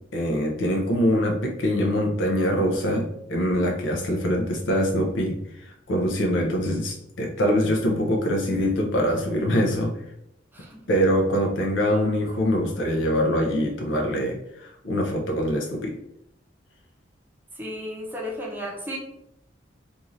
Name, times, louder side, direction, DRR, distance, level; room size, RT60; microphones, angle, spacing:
voice 1, 0.1-9.9 10.9-15.9, equal, 80° left, 1 dB, 0.5 m, -24 dB
voice 2, 17.6-19.0, equal, 10° right, -2 dB, 0.6 m, -34 dB
2.6 x 2.4 x 3.0 m, 0.77 s
head